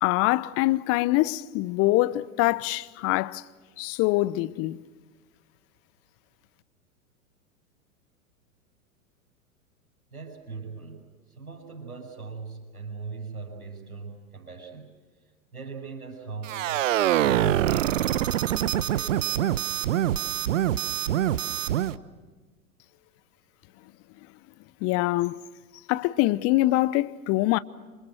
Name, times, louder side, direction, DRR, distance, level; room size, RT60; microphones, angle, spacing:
voice 1, 0.0-3.4 3.8-4.8 24.8-25.4 25.9-27.6, left 18 dB, 35° left, 0.9 m, -24 dB
voice 2, 10.1-15.0 15.5-16.9 17.2-19.3, right 4 dB, 85° right, 6.1 m, -40 dB
sound 1, 16.4-22.0, right 12 dB, 60° right, 1.1 m, -25 dB
28.5 x 25.5 x 6.2 m
figure-of-eight pair, 95°, 43 cm